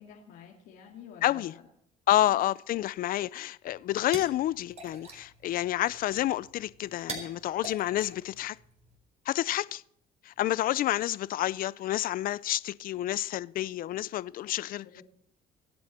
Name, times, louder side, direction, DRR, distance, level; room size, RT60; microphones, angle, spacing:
voice 1, 0.0-1.6 2.3-2.5 10.4-10.5 14.7-15.0, left 8 dB, 85° left, 2.2 m, -50 dB
voice 2, 1.2-1.5 2.1-8.6 9.3-9.8 10.2-15.0, left 14 dB, 55° left, 0.4 m, -29 dB
sound 1, 3.7-9.0, right 2 dB, 40° right, 4.1 m, -45 dB
24.0 x 8.7 x 4.3 m
cardioid pair, 110°, 17 cm